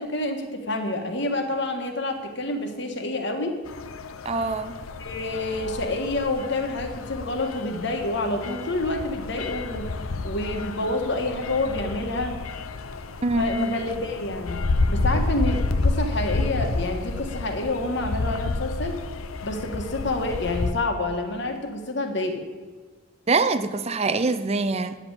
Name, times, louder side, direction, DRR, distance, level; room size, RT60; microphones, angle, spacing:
voice 1, 0.0-3.6 5.0-9.9 10.2-12.4 13.4-14.6 14.9-19.0 19.4-22.4, left 2 dB, 55° left, 5 dB, 1.6 m, -28 dB
sound 1, 3.7-20.7, left 3 dB, 85° left, 0.7 m, -30 dB
voice 2, 4.3-4.7 13.2-13.7 23.3-25.0, right 3 dB, 30° right, 11 dB, 0.5 m, -24 dB
9.7 x 7.6 x 8.9 m, 1.5 s
head